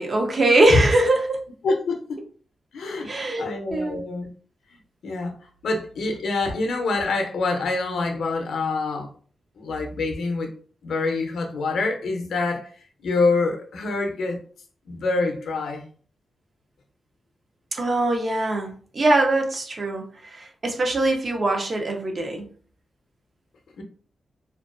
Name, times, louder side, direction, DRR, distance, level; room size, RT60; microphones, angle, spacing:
voice 1, 0.0-1.4 1.7-1.8 3.0-4.0 17.7-22.5, right 1 dB, 35° right, 2 dB, 0.5 m, -22 dB
voice 2, 1.6-2.0 2.7-3.1 3.4-4.3 5.0-5.4 5.6-9.1 9.6-10.5 10.8-12.7 13.0-14.4 14.9-15.8 23.8-23.9, left 3 dB, 80° left, 4 dB, 0.5 m, -26 dB
2.4 x 2.2 x 2.4 m, 0.43 s
wide cardioid pair, 155°, 0 cm